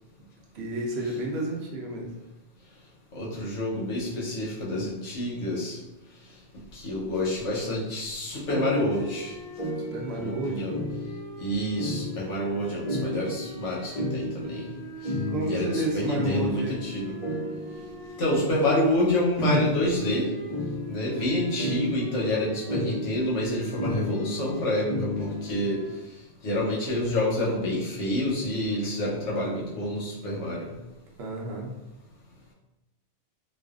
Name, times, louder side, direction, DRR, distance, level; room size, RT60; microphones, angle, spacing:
voice 1, 0.5-2.1 9.9-10.7 15.3-16.8 19.4-19.7 31.2-31.7, right 2 dB, 70° right, -1 dB, 0.8 m, -30 dB
voice 2, 3.1-5.8 6.7-9.3 10.1-10.7 11.4-14.7 15.4-17.1 18.2-20.3 20.9-25.8 26.4-30.6, left 1 dB, 85° left, -5 dB, 1.2 m, -28 dB
sound 1, 8.5-25.9, left 1 dB, 45° left, 0.4 m, -34 dB
2.6 x 2.3 x 2.3 m, 0.96 s
omnidirectional pair, 1.2 m